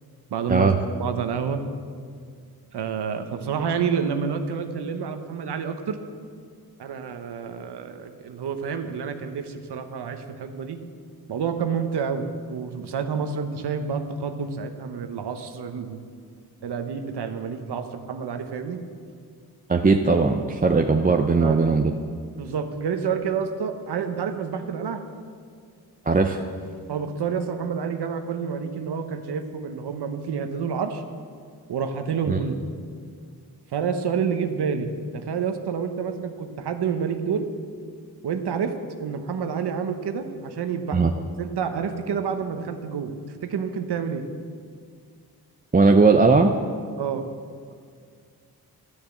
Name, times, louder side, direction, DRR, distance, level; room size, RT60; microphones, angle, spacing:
voice 1, 0.3-0.7 1.0-1.6 2.7-6.0 6.8-10.8 11.3-16.0 16.6-18.8 21.4-21.6 22.4-25.0 26.9-31.0 31.7-32.6 33.7-37.5 38.2-38.7 39.0-41.0 41.4-44.2 47.0-47.2, right 6 dB, 90° right, 7 dB, 1.0 m, -28 dB
voice 2, 19.7-21.9 26.1-26.4 32.3-32.4 40.9-41.1 45.7-46.5, right 4 dB, 20° right, 4 dB, 0.6 m, -18 dB
12.5 x 7.1 x 7.9 m, 2.1 s
wide cardioid pair, 95°, 39 cm